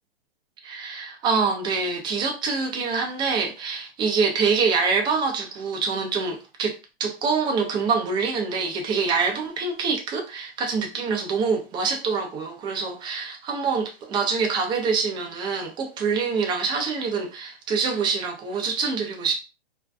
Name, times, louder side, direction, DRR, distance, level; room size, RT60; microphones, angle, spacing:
voice 1, 0.6-19.3, right 5 dB, 15° right, 0.4 m, -25 dB
2.5 x 2.2 x 2.2 m
hypercardioid pair, 125°, 30 cm